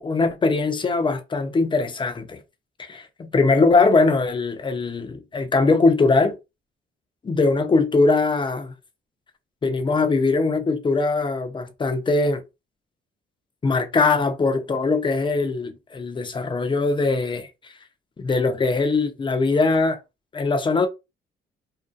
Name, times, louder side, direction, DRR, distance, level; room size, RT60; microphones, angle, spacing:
voice 1, 0.0-2.4 2.8-6.4 7.2-8.7 9.6-12.4 13.6-17.5 18.2-20.0 20.3-20.9, left 3 dB, 25° left, 0.5 m, -21 dB
2.6 x 2.2 x 2.4 m
cardioid pair, 90°, 20 cm